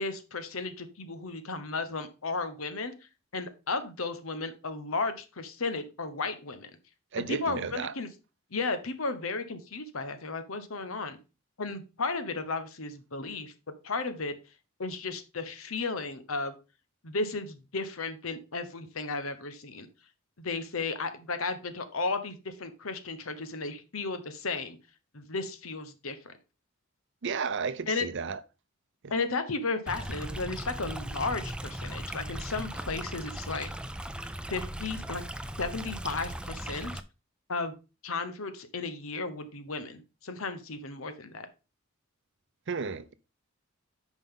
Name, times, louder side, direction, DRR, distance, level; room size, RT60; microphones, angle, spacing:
voice 1, 0.0-2.9 3.3-6.7 7.3-8.1 8.5-11.2 11.6-13.5 13.8-14.4 14.8-16.5 17.0-19.9 20.4-24.8 25.1-26.3 27.9-28.1 29.1-33.7 34.5-35.2 35.6-36.9 37.5-37.7 38.0-41.5, left 3 dB, 85° left, 1.1 m, -34 dB
voice 2, 7.1-7.9 27.2-28.4 29.0-29.1 42.7-43.2, right 5 dB, 60° right, 0.6 m, -33 dB
Stream, 29.9-37.0, right 1 dB, 5° right, 0.4 m, -38 dB
9.1 x 5.3 x 3.8 m
head